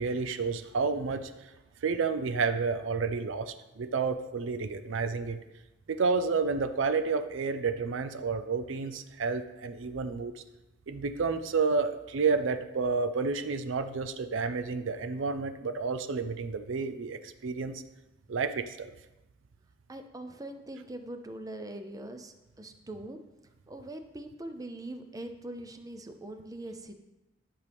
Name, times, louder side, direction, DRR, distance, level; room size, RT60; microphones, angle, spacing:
voice 1, 0.0-1.3 1.8-5.4 5.9-10.4 10.9-17.8 18.3-18.9, right 4 dB, 70° right, 10 dB, 0.5 m, -30 dB
voice 2, 19.9-23.2 23.7-27.0, right 1 dB, 20° right, 7 dB, 0.5 m, -42 dB
11.0 x 5.4 x 3.5 m, 1.0 s
head